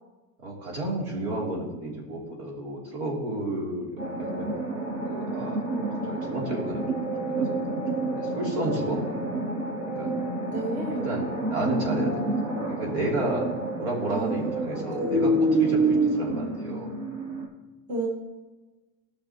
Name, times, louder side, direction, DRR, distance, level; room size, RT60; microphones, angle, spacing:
voice 1, 0.4-4.6 5.0-5.6 6.0-6.9 7.2-9.0 9.9-10.1 10.9-16.9, right 1 dB, 75° right, -2 dB, 3.0 m, -32 dB
sound 1, 4.0-17.5, right 2 dB, 55° right, 3.0 m, -28 dB
voice 2, 10.4-11.2 14.1-15.3 17.9-18.1, right 3 dB, 20° right, 0 dB, 1.3 m, -33 dB
16.5 x 5.8 x 2.9 m, 1.2 s
cardioid pair, 170°, 33 cm